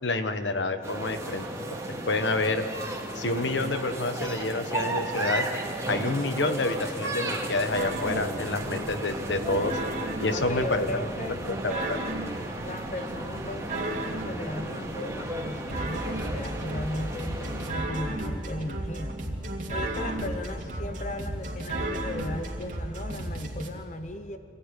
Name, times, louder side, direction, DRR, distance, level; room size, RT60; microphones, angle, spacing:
voice 1, 0.0-1.5 2.1-2.7 3.1-5.5 5.9-9.8 10.2-10.9 11.6-12.0, left 2 dB, 80° left, 8 dB, 1.4 m, -28 dB
sound 1, 0.8-17.7, right 2 dB, 15° right, 2.4 m, -35 dB
sound 2, 7.7-23.7, right 1 dB, 45° right, 3.0 m, -34 dB
voice 2, 10.3-11.4 11.7-12.0 12.6-19.2 19.7-24.4, left 1 dB, 40° left, 8 dB, 0.9 m, -36 dB
26.0 x 15.5 x 10.0 m, 2.6 s
head